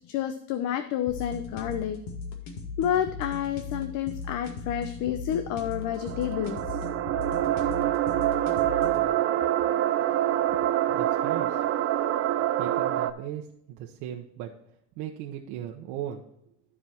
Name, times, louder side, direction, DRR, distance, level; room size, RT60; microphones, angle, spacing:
voice 1, 0.1-2.0 2.8-6.6 10.5-10.7, left 10 dB, 60° left, 9 dB, 0.8 m, -29 dB
sound 1, 1.1-9.1, left 4 dB, 85° left, 2.1 m, -38 dB
sound 2, 5.7-13.1, right 12 dB, 45° right, 0.6 m, -26 dB
voice 2, 10.9-11.6 12.6-14.5 15.0-16.3, right 10 dB, 75° right, 0 dB, 1.1 m, -37 dB
13.0 x 5.0 x 4.4 m, 0.75 s
cardioid pair, 150°, 33 cm